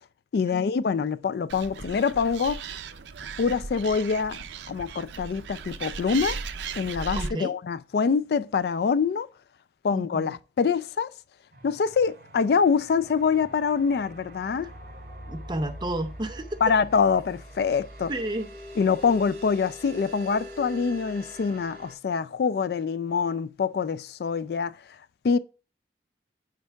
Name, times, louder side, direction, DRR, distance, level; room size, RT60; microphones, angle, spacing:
voice 1, 0.3-2.6 3.4-6.4 6.8-9.3 9.8-11.1 11.6-14.7 16.6-18.1 18.8-24.8 25.2-25.4, left 5 dB, 60° left, 0.3 m, -25 dB
Animal, 1.5-7.3, right 5 dB, 80° right, 0.5 m, -37 dB
voice 2, 7.1-7.5 9.9-10.3 15.3-16.6 18.1-18.5, right 1 dB, 25° right, 0.6 m, -32 dB
sound 1, 11.5-21.9, equal, 55° right, 3.2 m, -43 dB
9.6 x 4.6 x 2.3 m
head